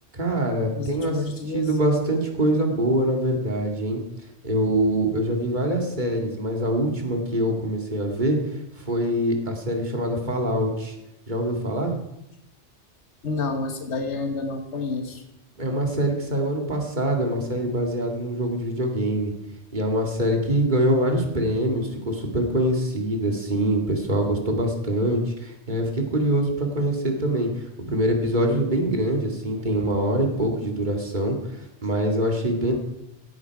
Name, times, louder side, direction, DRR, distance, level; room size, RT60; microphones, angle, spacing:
voice 1, 0.1-1.2 1.5-4.0 4.4-8.4 8.8-10.9 11.3-12.0 15.6-19.3 19.7-27.5 27.9-32.7, right 1 dB, 40° right, 2 dB, 2.5 m, -24 dB
voice 2, 0.8-1.6 13.2-15.2, left 3 dB, 85° left, 5 dB, 1.6 m, -29 dB
17.0 x 11.5 x 4.7 m, 0.84 s
omnidirectional pair, 1.2 m